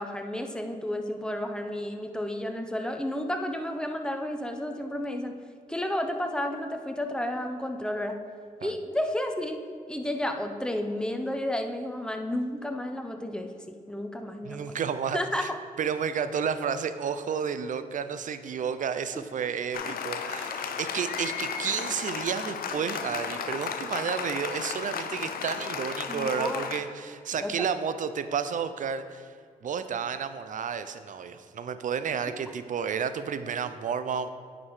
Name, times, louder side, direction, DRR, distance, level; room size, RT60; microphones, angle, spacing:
voice 1, 0.0-5.4 5.7-8.2 8.6-9.6 9.9-13.5 13.9-14.7 15.1-15.6 19.1-19.2 19.8-19.9 26.1-26.7 27.4-27.5, left 1 dB, 5° left, 5 dB, 0.7 m, -32 dB
voice 2, 14.4-15.5 15.8-29.3 29.6-34.3, right 7 dB, 55° right, 12 dB, 0.5 m, -31 dB
Applause, 19.7-26.8, left 7 dB, 65° left, 0.5 m, -34 dB
9.9 x 4.9 x 3.2 m, 2.1 s
supercardioid pair, 50°, 16 cm